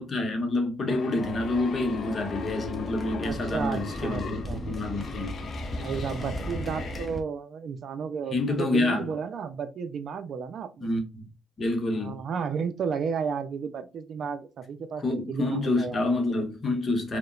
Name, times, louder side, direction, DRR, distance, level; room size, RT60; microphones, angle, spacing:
voice 1, 0.0-5.4 8.3-9.1 10.8-11.3 11.6-12.2 15.0-17.2, left 2 dB, 40° left, 0.8 m, -28 dB
sound 1, 0.9-7.1, left 5 dB, 60° left, 0.4 m, -40 dB
sound 2, 1.2-7.2, equal, 15° left, 0.7 m, -36 dB
voice 2, 3.2-4.6 5.8-10.9 12.0-16.0, right 6 dB, 65° right, 0.4 m, -33 dB
2.8 x 2.1 x 2.4 m
cardioid pair, 90°, 0 cm